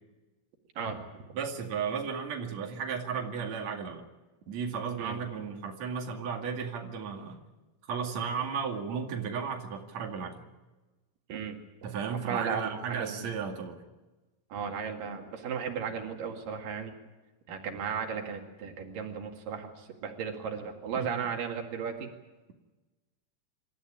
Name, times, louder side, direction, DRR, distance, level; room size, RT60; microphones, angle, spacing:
voice 1, 0.8-1.2 5.0-5.2 11.3-11.6 11.8-13.3 14.5-16.9 17.5-22.1, right 6 dB, 90° right, 3 dB, 3.8 m, -35 dB
voice 2, 1.3-4.1 4.5-7.4 7.9-10.5 11.8-13.8 20.9-21.1, right 6 dB, 55° right, 2 dB, 3.4 m, -34 dB
27.0 x 14.0 x 9.9 m, 1.2 s
omnidirectional pair, 3.7 m